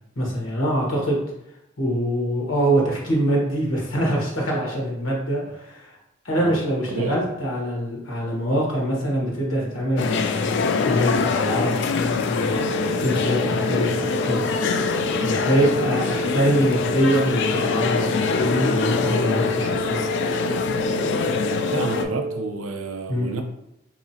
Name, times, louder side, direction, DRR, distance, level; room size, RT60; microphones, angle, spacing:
voice 1, 0.1-1.2 1.8-5.9 6.2-12.6 13.0-14.4 15.2-20.0 23.1-23.3, equal, 85° left, -2 dB, 1.3 m, -24 dB
voice 2, 6.9-7.2 21.7-23.4, right 3 dB, 85° right, 6 dB, 0.5 m, -29 dB
sound 1, 10.0-22.0, left 5 dB, 60° left, 0.3 m, -24 dB
sound 2, 12.5-22.5, right 2 dB, 30° right, 0.3 m, -30 dB
3.8 x 3.0 x 2.8 m, 0.83 s
head